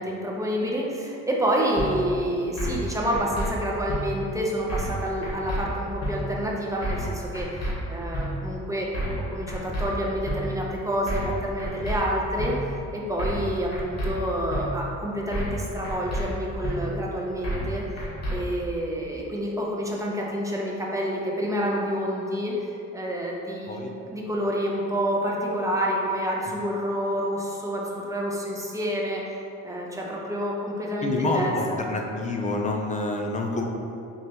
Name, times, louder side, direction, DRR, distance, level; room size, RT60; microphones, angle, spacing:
voice 1, 0.0-8.9 9.2-12.6 12.9-18.0 18.3-23.8 24.1-31.8, equal, 10° right, -3 dB, 0.7 m, -28 dB
sound 1, 1.8-1.9 2.6-2.8 3.1-3.5 3.9-4.0 4.7-5.0 5.2-5.6 6.0-6.1 6.8-7.1 7.3-7.7 8.1-8.3 8.9-9.2 9.5-9.9 10.3-10.4 11.1-11.3 11.6-12.0 12.4-12.5 13.2-13.5 13.7-14.1 14.5-14.6 15.3-15.6 15.8-16.2 16.6-16.8 17.4-17.7 18.0-18.4, equal, 55° left, 1.4 m, -29 dB
voice 2, 31.0-33.6, left 2 dB, 25° left, 1 dB, 0.5 m, -27 dB
4.5 x 3.2 x 2.9 m, 2.7 s
cardioid pair, 90°, 30 cm